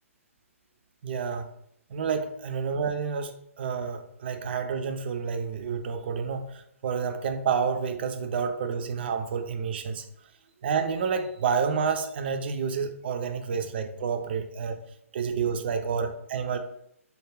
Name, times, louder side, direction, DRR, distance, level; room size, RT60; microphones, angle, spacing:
voice 1, 1.0-1.5 1.9-10.0 10.6-14.8 15.1-16.6, right 6 dB, 45° right, 6 dB, 0.4 m, -29 dB
2.3 x 2.2 x 3.1 m, 0.73 s
figure-of-eight pair, 130°, 8 cm